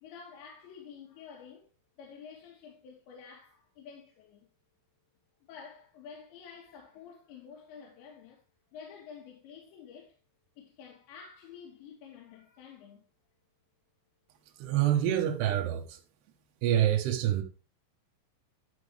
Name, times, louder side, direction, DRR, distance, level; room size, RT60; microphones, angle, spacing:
voice 1, 0.0-1.7 2.0-4.5 5.5-8.4 8.7-10.2 10.6-13.1, left 6 dB, 75° left, 3.8 m, -50 dB
voice 2, 14.6-16.0 16.6-17.4, right 11 dB, 70° right, 3.0 m, -26 dB
12.0 x 5.9 x 3.4 m
omnidirectional pair, 5.3 m